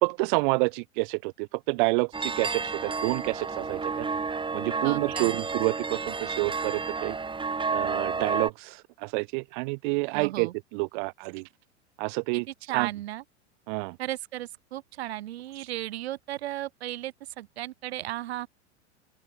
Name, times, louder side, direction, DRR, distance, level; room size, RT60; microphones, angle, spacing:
voice 1, 0.0-4.1 4.5-7.1 7.7-11.5 12.0-12.5 12.7-12.9 13.7-14.0, right 31 dB, 45° right, 0.7 m, -28 dB
sound 1, 2.1-8.5, right 4 dB, 15° right, 4.2 m, -31 dB
voice 2, 4.7-5.4 10.1-10.5 12.3-13.2 14.0-18.5, right 14 dB, 60° right, 1.8 m, -35 dB
open air
figure-of-eight pair, 85°, 35 cm